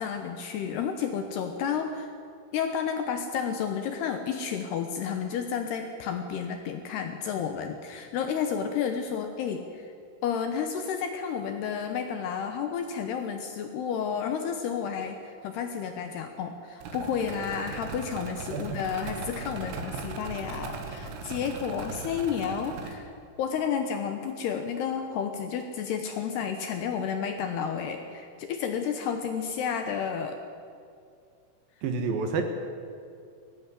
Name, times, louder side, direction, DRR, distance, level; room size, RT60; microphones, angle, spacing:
voice 1, 0.0-2.1 2.5-9.9 10.2-23.1 23.4-30.4, left 7 dB, 70° left, 6 dB, 2.6 m, -31 dB
sound 1, 16.8-22.9, right 4 dB, 90° right, 4.5 m, -38 dB
voice 2, 31.8-32.4, right 5 dB, 65° right, 6 dB, 2.5 m, -29 dB
18.5 x 14.5 x 9.8 m, 2.4 s
omnidirectional pair, 5.7 m